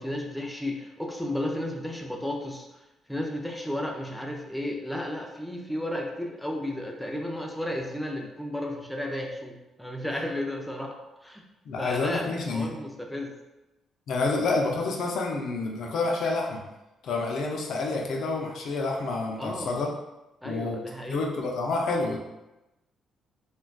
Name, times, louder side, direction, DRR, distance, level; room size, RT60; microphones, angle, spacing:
voice 1, 0.0-2.8 3.1-11.4 11.8-13.3 19.4-19.8 20.4-21.2, left 1 dB, ahead, 0 dB, 0.5 m, -33 dB
voice 2, 11.6-12.7 14.1-16.6 17.0-19.9 20.4-20.8 21.1-22.2, left 3 dB, 70° left, 0 dB, 0.5 m, -28 dB
3.8 x 2.3 x 2.3 m, 0.97 s
cardioid pair, 90°, 0 cm